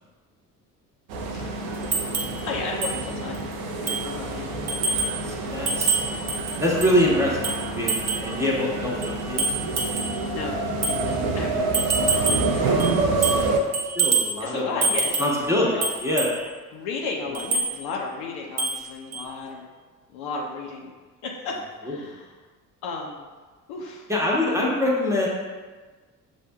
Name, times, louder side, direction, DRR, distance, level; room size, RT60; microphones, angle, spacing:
sound 1, 1.1-13.6, right 3 dB, 65° right, 0.6 m, -28 dB
voice 1, 1.3-1.8 2.4-3.5 3.8-5.1 10.3-10.6 11.3-12.7 14.4-15.3 15.7-15.9 16.7-19.7 20.1-20.9 21.2-22.3 22.8-23.2 23.7-24.1, left 4 dB, 55° left, -1 dB, 0.7 m, -34 dB
sound 2, 1.9-2.4 2.8-3.0 3.3-3.4 3.9-4.1 4.7-5.2 5.7-7.0 7.4-8.3 9.0-10.2 10.8-11.0 11.7-12.5 12.8-13.5 13.7-14.4 14.8-15.4 15.8-16.4 17.3-17.7 18.6-18.8 19.1-19.2, right 4 dB, 35° right, 0.9 m, -26 dB
voice 2, 4.8-6.0 6.6-7.4 7.7-10.4 12.6-13.5 13.9-14.9 15.2-16.3 21.8-22.1 24.1-25.3, left 1 dB, 5° right, -4 dB, 1.1 m, -25 dB
6.8 x 2.6 x 2.3 m, 1.3 s
figure-of-eight pair, 50°, 46 cm